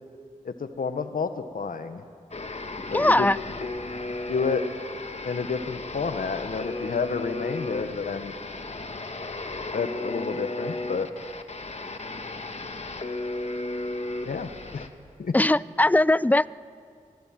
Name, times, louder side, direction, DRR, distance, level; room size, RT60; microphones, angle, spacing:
voice 1, 0.4-2.0 2.9-3.3 3.6-3.7 4.3-4.6 5.2-8.3 9.7-11.1 14.2-14.9 15.2-15.3, left 5 dB, 80° left, 9 dB, 1.2 m, -30 dB
sound 1, 2.3-14.9, left 2 dB, 50° left, 1.5 m, -35 dB
voice 2, 2.9-3.4 15.3-16.5, left 1 dB, 10° left, 20 dB, 0.4 m, -20 dB
23.5 x 17.0 x 7.6 m, 2.2 s
cardioid pair, 45°, 14 cm